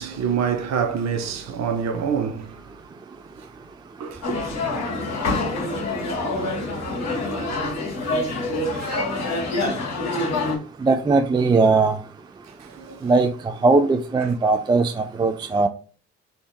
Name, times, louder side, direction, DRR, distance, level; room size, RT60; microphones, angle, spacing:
voice 1, 0.0-2.5 4.0-4.2 8.7-9.1 12.8-12.9, right 7 dB, 50° right, 0.9 m, -26 dB
sound 1, 4.2-10.5, left 2 dB, 50° left, 1.7 m, -26 dB
voice 2, 10.8-12.0 13.0-13.3 13.6-15.7, right 3 dB, 15° right, 0.4 m, -19 dB
3.4 x 2.8 x 4.2 m
hypercardioid pair, 50°, 34 cm